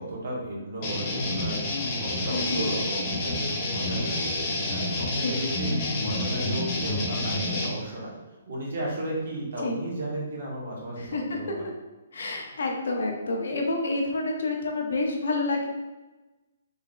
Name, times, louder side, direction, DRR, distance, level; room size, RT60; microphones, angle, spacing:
voice 1, 0.0-1.6 2.0-4.4 4.6-8.1 8.5-11.7, right 1 dB, 55° right, -4 dB, 1.4 m, -34 dB
sound 1, 0.8-7.7, left 2 dB, 25° left, 0.6 m, -28 dB
voice 2, 2.3-2.8 5.2-5.3 9.6-9.8 11.0-11.5 12.1-15.7, left 2 dB, 70° left, 2 dB, 0.7 m, -29 dB
3.9 x 3.4 x 2.4 m, 1.1 s
hypercardioid pair, 170°, 0 cm